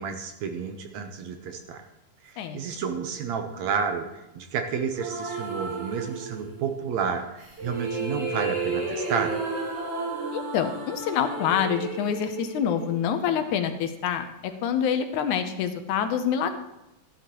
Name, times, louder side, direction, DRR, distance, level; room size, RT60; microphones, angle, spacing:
voice 1, 0.0-1.8 2.2-9.4, right 6 dB, 70° right, 5 dB, 2.0 m, -31 dB
sound 1, 4.9-6.7 7.4-13.5, right 3 dB, 45° right, 3.6 m, -32 dB
voice 2, 10.3-16.6, left 8 dB, 75° left, 8 dB, 2.1 m, -26 dB
14.5 x 11.5 x 3.0 m, 0.91 s
omnidirectional pair, 3.6 m